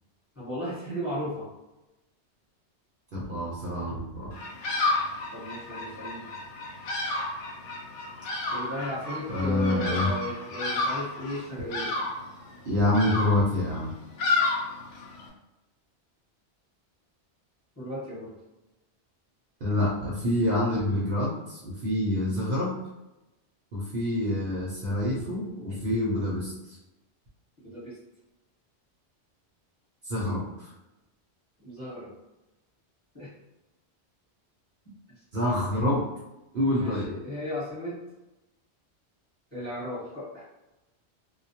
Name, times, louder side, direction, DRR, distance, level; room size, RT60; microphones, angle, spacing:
voice 1, 0.3-1.5 5.3-6.3 8.5-11.9 17.8-18.3 27.6-28.0 31.6-32.1 33.1-33.3 36.7-38.0 39.5-40.5, left 1 dB, 15° left, -10 dB, 1.1 m, -35 dB
voice 2, 3.1-4.3 9.3-10.1 12.6-13.9 19.6-22.7 23.7-26.8 30.0-30.7 35.3-36.0 36.5-37.1, left 1 dB, 55° right, -6 dB, 0.8 m, -27 dB
Bird vocalization bird call bird song, 4.3-15.3, left 2 dB, 85° left, 0.9 m, -31 dB
2.2 x 2.1 x 2.7 m, 0.99 s
omnidirectional pair, 1.2 m